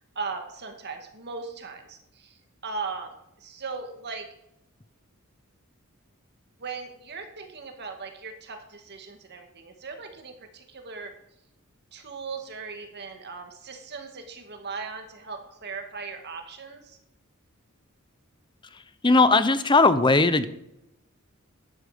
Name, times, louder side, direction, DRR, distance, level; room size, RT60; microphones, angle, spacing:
voice 1, 0.2-4.3 6.6-11.1 11.9-17.0, right 4 dB, 50° right, 5 dB, 2.0 m, -38 dB
voice 2, 19.0-20.5, left 3 dB, 20° left, 13 dB, 0.7 m, -18 dB
12.0 x 10.0 x 5.1 m, 0.85 s
head